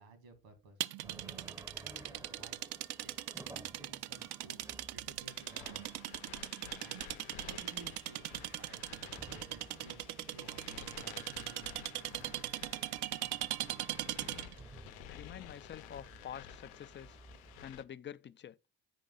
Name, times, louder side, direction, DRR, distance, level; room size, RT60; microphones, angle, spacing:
voice 1, 0.0-2.6 3.0-3.1 3.5-4.6 4.9-5.8 6.8-7.0 7.4-12.2, right 3 dB, 80° right, 2.1 m, -56 dB
sound 1, 0.8-14.6, right 14 dB, 55° right, 0.6 m, -40 dB
sound 2, 1.0-17.7, right 2 dB, 5° right, 0.7 m, -57 dB
sound 3, 5.3-17.8, left 12 dB, 75° left, 0.8 m, -53 dB
voice 2, 15.1-17.2 17.6-18.6, left 9 dB, 25° left, 0.4 m, -47 dB
9.1 x 5.2 x 3.8 m
hypercardioid pair, 50°, 49 cm